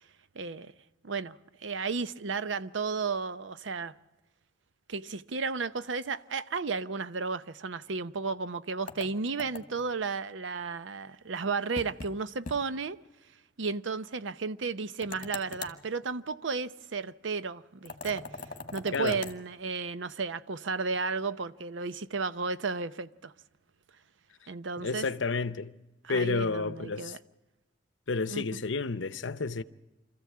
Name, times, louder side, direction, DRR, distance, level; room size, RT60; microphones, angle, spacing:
voice 1, 0.3-0.7 1.0-3.9 4.9-13.0 13.6-18.3 18.7-23.3 24.5-25.1 26.0-27.2 28.3-28.6, right 4 dB, 85° right, 0.7 m, -33 dB
sound 1, 8.9-9.9 11.8-12.1 12.5-12.6 12.9-13.0 15.0-15.8 17.9-19.4, left 3 dB, 45° left, 1.7 m, -41 dB
voice 2, 24.8-25.7 26.1-27.2 28.1-29.6, left 4 dB, 80° left, 0.8 m, -30 dB
26.0 x 14.5 x 8.5 m
head